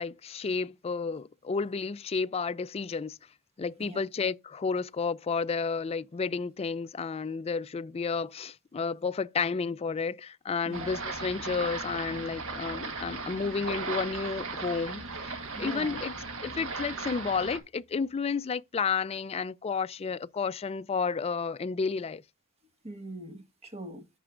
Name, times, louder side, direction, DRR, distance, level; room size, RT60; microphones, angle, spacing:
voice 1, 0.0-3.2 3.6-16.2 16.4-22.2, left 5 dB, 25° left, 0.3 m, -31 dB
sound 1, 10.7-17.6, right 4 dB, 60° right, 1.4 m, -37 dB
voice 2, 15.5-16.0 22.8-24.0, right 1 dB, 30° right, 1.6 m, -42 dB
11.0 x 7.6 x 2.5 m
head